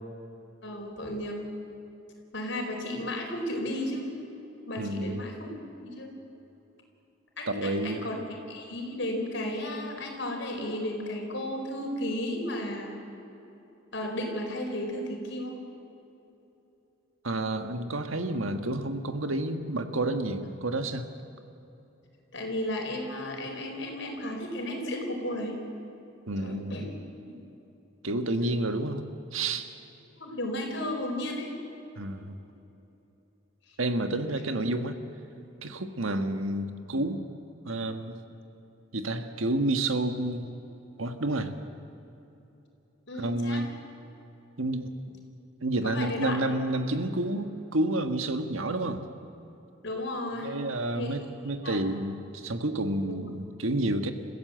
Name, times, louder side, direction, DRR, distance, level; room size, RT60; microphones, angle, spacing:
voice 1, 0.6-1.4 2.3-4.1 4.6-5.5 5.8-6.1 7.4-8.2 8.5-12.9 13.9-15.5 22.3-25.6 26.4-26.8 27.2-27.3 30.2-31.5 43.1-43.7 45.8-46.4 49.8-50.6 50.9-51.2 51.6-51.8 53.1-53.2, left 1 dB, 65° left, 1 dB, 4.5 m, -34 dB
voice 2, 4.8-5.2 7.5-8.1 17.2-21.1 26.3-26.9 28.0-29.7 31.9-32.4 33.8-35.0 35.6-37.2 37.6-38.2 38.9-40.5 41.0-41.5 43.2-43.7 44.6-44.9 45.6-49.0 50.4-54.1, right 2 dB, 90° right, 7 dB, 1.6 m, -30 dB
29.0 x 15.5 x 7.8 m, 3.0 s
head